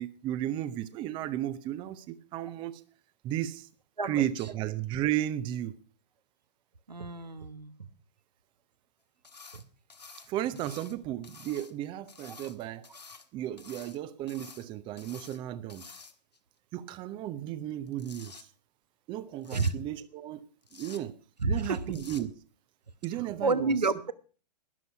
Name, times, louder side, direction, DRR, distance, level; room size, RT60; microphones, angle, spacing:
voice 1, 0.0-2.8 3.2-3.7 4.0-5.7 10.3-12.9 13.3-15.8 16.7-18.5 19.1-20.4 20.7-21.1 21.5-22.3 23.0-23.8, right 12 dB, 25° right, 15 dB, 0.7 m, -34 dB
voice 2, 6.9-7.8 9.5-9.6 12.2-12.3 19.5-19.7 21.4-21.8 23.4-24.1, right 3 dB, 80° right, 12 dB, 1.1 m, -29 dB
sound 1, 9.2-9.6 9.9-10.9 11.2-11.7 12.1-13.3 13.6-14.0 14.3-14.6 15.0-15.4 15.7-16.4 17.7-18.4 19.4-19.7 20.6-21.0 21.9-22.2, left 4 dB, 80° left, 1.5 m, -50 dB
12.0 x 11.0 x 5.7 m, 0.38 s
figure-of-eight pair, 110°, 21 cm